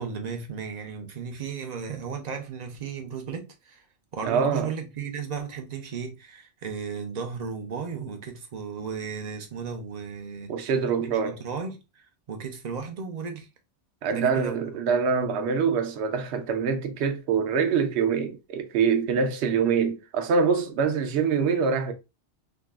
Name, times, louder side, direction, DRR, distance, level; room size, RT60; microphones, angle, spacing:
voice 1, 0.0-3.8 4.1-10.7 11.0-13.5 14.1-14.6, right 6 dB, 45° right, 0.6 m, -35 dB
voice 2, 4.2-4.7 10.5-11.4 14.0-21.9, right 6 dB, 70° right, 0.8 m, -24 dB
3.6 x 2.3 x 2.3 m
omnidirectional pair, 1.2 m